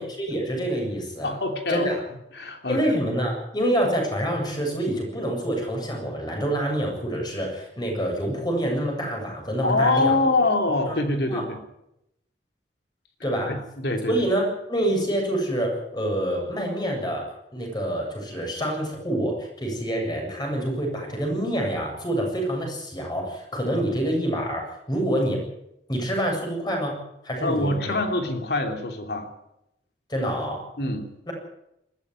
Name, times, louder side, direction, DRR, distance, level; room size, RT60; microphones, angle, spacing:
voice 1, 0.0-1.4 1.7-2.0 2.7-10.1 10.9-11.0 11.2-11.4 13.2-13.5 14.1-17.2 17.5-25.4 25.9-27.0 27.2-28.0 30.1-30.6 31.3-31.4, right 1 dB, 25° left, 1 dB, 7.8 m, -26 dB
voice 2, 1.2-1.9 2.3-2.8 9.6-11.6 13.5-14.1 27.4-29.3 30.8-31.1, left 2 dB, 65° left, 4 dB, 3.1 m, -24 dB
20.5 x 15.0 x 9.6 m, 0.84 s
head